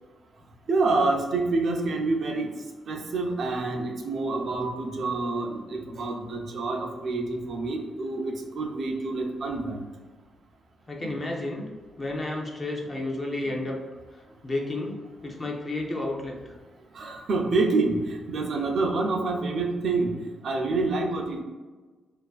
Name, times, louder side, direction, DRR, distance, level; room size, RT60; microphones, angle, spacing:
voice 1, 0.7-2.5 2.9-9.8 11.0-11.2 16.9-20.1 20.4-21.4, right 3 dB, 55° right, 1 dB, 0.3 m, -27 dB
voice 2, 10.9-11.7 12.0-13.8 14.4-14.9 15.2-16.6, left 2 dB, 25° left, -1 dB, 0.4 m, -31 dB
2.4 x 2.3 x 2.3 m, 1.3 s
cardioid pair, 135°, 0 cm